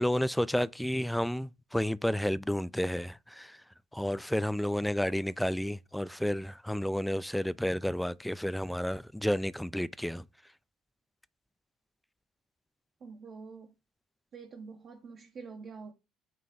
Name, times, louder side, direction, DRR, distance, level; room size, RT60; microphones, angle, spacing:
voice 1, 0.0-3.6 3.9-10.2, equal, 5° left, 0.4 m, -31 dB
voice 2, 13.0-13.7 14.3-15.9, right 5 dB, 50° right, 1.0 m, -46 dB
8.7 x 3.2 x 3.9 m
hypercardioid pair, 55°, 0 cm